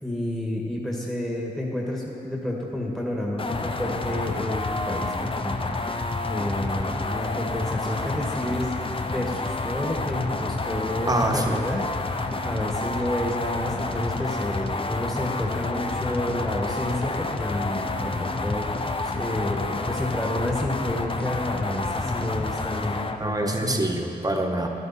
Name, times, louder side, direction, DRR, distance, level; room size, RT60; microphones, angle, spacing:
voice 1, 0.0-8.7 9.1-23.8, left 1 dB, ahead, -3 dB, 1.8 m, -30 dB
sound 1, 3.4-23.2, left 3 dB, 30° left, 0.8 m, -29 dB
voice 2, 11.1-11.6 22.9-24.7, right 1 dB, 20° right, 2 dB, 1.5 m, -26 dB
12.0 x 11.5 x 4.3 m, 2.9 s
supercardioid pair, 50°, 17 cm